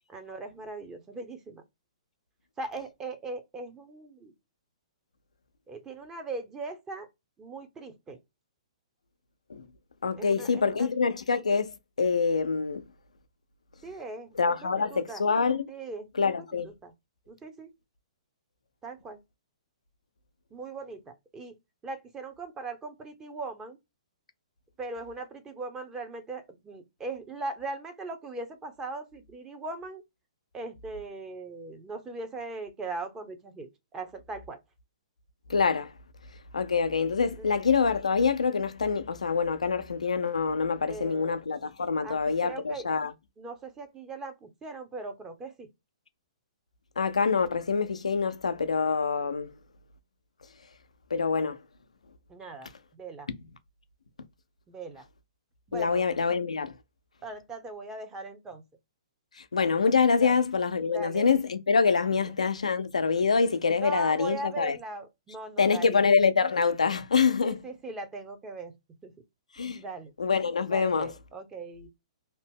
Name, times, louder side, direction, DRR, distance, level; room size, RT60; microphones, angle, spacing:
voice 1, 0.1-1.6 2.6-4.3 5.7-7.1 7.4-8.2 10.2-10.9 13.8-15.2 15.7-16.1 16.8-16.9 17.3-17.7 18.8-19.2 20.5-21.5 21.8-23.8 24.8-30.0 30.5-33.7 33.9-34.6 40.8-41.3 42.0-42.9 43.4-45.7 52.3-53.3 54.7-55.0 55.7-56.0 57.2-58.6 60.2-60.4 60.9-61.3 62.3-62.4 63.8-66.0 67.4-68.7 69.0-69.1 69.7-70.1 70.7-71.9, right 3 dB, 15° right, 0.7 m, -39 dB
voice 2, 10.0-12.8 14.3-15.6 16.1-16.7 35.5-35.9 36.5-43.1 47.0-49.5 51.1-51.6 53.3-53.4 55.7-56.7 59.4-64.8 65.6-67.6 69.6-69.8 70.2-71.1, left 5 dB, 85° left, 0.5 m, -25 dB
2.7 x 2.0 x 3.5 m
hypercardioid pair, 130°, 3 cm